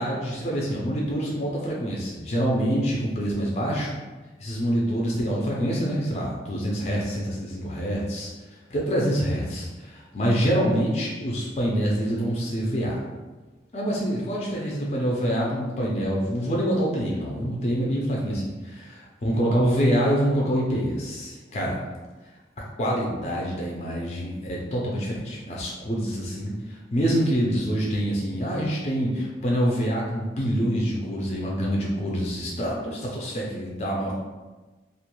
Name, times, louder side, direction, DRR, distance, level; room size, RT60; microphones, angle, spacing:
voice 1, 0.0-4.0 4.4-8.3 8.7-13.0 13.7-21.8 22.8-34.1, equal, 35° left, -3 dB, 0.4 m, -26 dB
2.4 x 2.2 x 3.0 m, 1.2 s
head